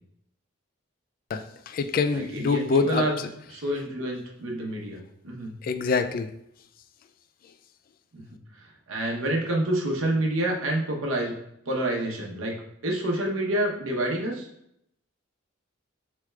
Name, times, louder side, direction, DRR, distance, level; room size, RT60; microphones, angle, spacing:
voice 1, 1.3-3.0 5.6-6.3, left 4 dB, 45° left, 9 dB, 0.3 m, -25 dB
voice 2, 2.1-3.2 3.5-5.5 8.1-8.2 8.6-11.3 11.7-12.5 12.8-14.5, right 1 dB, 90° right, 0 dB, 0.9 m, -28 dB
6.3 x 3.4 x 2.3 m, 0.76 s
head